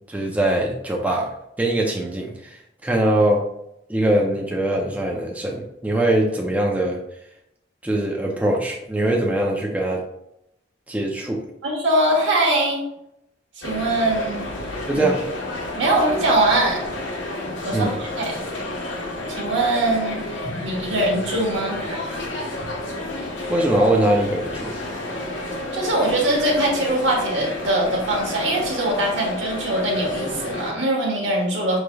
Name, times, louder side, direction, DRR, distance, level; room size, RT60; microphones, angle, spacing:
voice 1, 0.1-1.3 1.6-2.6 2.8-3.4 3.9-7.0 7.8-10.0 10.9-11.4 14.9-15.2 17.7-17.9 23.5-24.8, right 1 dB, 10° right, -1 dB, 0.4 m, -22 dB
voice 2, 11.6-12.8 13.6-14.4 14.9-15.1 15.7-16.8 17.6-18.4 19.3-20.3 20.6-22.2 25.7-31.8, right 1 dB, 80° right, -1 dB, 1.2 m, -22 dB
sound 1, 13.6-30.7, left 2 dB, 90° left, 0.8 m, -31 dB
5.1 x 3.2 x 2.2 m, 0.80 s
head